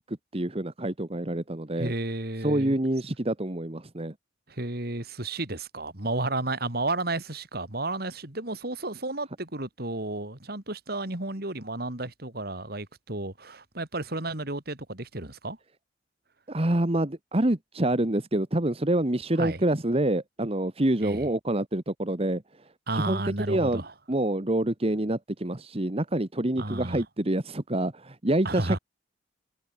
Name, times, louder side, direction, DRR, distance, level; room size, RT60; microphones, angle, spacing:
voice 1, 0.0-1.9 2.4-4.1 16.5-22.7 22.9-23.2 23.5-23.8 24.1-28.8, right 1 dB, 35° right, 1.4 m, -27 dB
voice 2, 1.8-2.8 4.5-15.6 19.4-19.6 21.0-21.3 22.9-23.9 26.6-27.0 28.5-28.8, right 2 dB, 55° right, 3.4 m, -32 dB
head